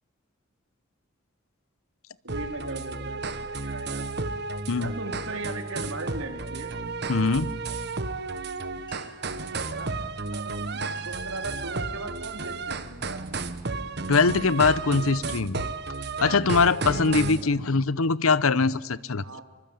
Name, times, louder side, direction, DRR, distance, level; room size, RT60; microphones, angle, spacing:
voice 1, 2.2-4.1 4.8-6.9 9.7-9.9 10.3-13.2 17.2-17.5 19.2-19.4, right 2 dB, 75° right, 6 dB, 3.9 m, -38 dB
sound 1, 2.3-17.4, right 3 dB, 50° right, 1.4 m, -33 dB
voice 2, 7.1-7.5 14.1-15.6 16.2-19.4, left 4 dB, 80° left, 19 dB, 0.9 m, -22 dB
sound 2, 8.8-9.4 10.3-10.4 10.8-11.4 11.9-12.2 12.8-13.1 13.6-14.9, left 2 dB, 20° left, 7.5 m, -56 dB
26.0 x 24.5 x 9.0 m, 1.4 s
head